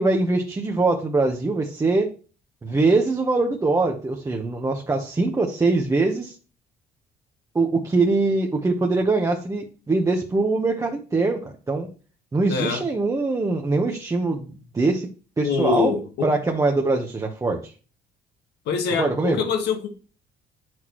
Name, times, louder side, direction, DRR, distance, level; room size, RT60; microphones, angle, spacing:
voice 1, 0.0-2.1 2.6-6.3 7.5-11.9 12.3-15.1 15.4-15.9 16.2-17.7 19.0-19.4, right 3 dB, 20° right, 1 dB, 1.0 m, -22 dB
voice 2, 12.5-12.8 15.4-16.3 18.6-19.9, left 5 dB, 85° left, 5 dB, 1.6 m, -24 dB
9.3 x 6.1 x 3.1 m, 0.36 s
cardioid pair, 110°, 17 cm